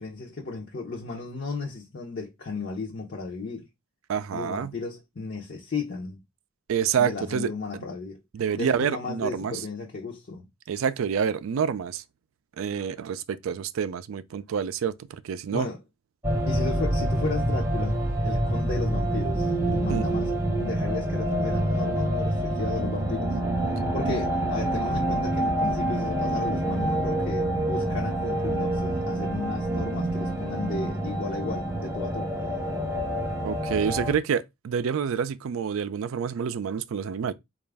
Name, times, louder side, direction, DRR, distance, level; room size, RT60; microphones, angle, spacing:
voice 1, 0.0-3.7 4.3-6.2 7.0-8.2 8.6-10.5 15.5-15.8 16.5-18.0 18.2-20.3 20.6-23.4 23.9-32.3, left 3 dB, 50° left, 0.6 m, -34 dB
voice 2, 4.1-4.7 6.7-7.5 8.3-9.6 10.7-12.0 12.6-15.7 19.9-20.0 33.4-37.3, right 7 dB, 75° right, 0.4 m, -28 dB
sound 1, 16.2-34.1, right 1 dB, 15° right, 0.6 m, -27 dB
4.0 x 2.4 x 3.4 m
head